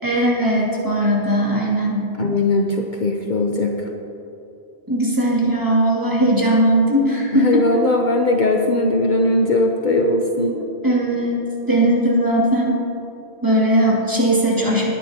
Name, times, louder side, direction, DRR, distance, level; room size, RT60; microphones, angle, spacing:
voice 1, 0.0-2.1 4.9-7.6 10.5-11.4 11.7-12.8 13.4-14.9, right 1 dB, 20° right, -4 dB, 2.4 m, -18 dB
voice 2, 2.2-3.8 7.3-10.5, left 2 dB, 50° left, 2 dB, 0.8 m, -19 dB
19.5 x 10.0 x 2.9 m, 3.0 s
omnidirectional pair, 1.1 m